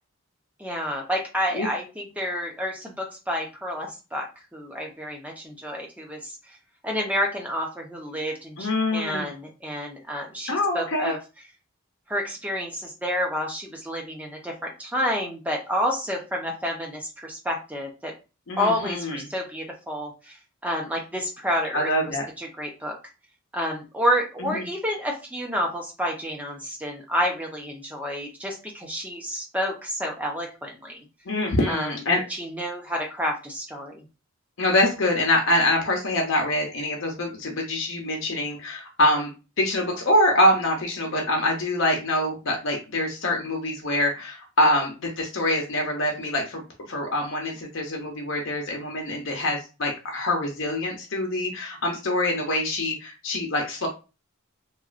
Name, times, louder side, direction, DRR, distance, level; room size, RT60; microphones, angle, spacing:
voice 1, 0.6-4.3 4.5-6.3 6.8-11.2 12.1-18.1 18.6-20.3 20.6-23.0 23.5-31.0 31.7-34.0, equal, 5° right, 0 dB, 0.6 m, -29 dB
voice 2, 8.6-9.3 10.5-11.1 18.5-19.2 21.7-22.3 24.4-24.7 31.3-32.2 34.6-39.3 39.6-46.6 46.9-53.9, left 1 dB, 65° left, 1 dB, 0.7 m, -25 dB
3.0 x 2.3 x 2.4 m, 0.30 s
head